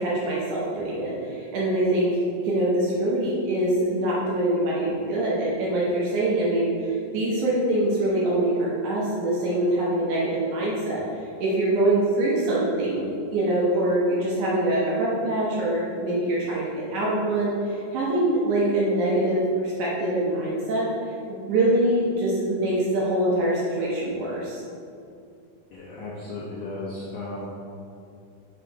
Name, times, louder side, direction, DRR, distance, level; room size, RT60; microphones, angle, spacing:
voice 1, 0.0-16.7 16.9-20.9 21.3-24.6, right 1 dB, 70° right, -6 dB, 2.2 m, -24 dB
voice 2, 25.7-27.5, left 2 dB, 90° left, -5 dB, 1.4 m, -35 dB
6.2 x 3.8 x 4.5 m, 2.5 s
omnidirectional pair, 4.0 m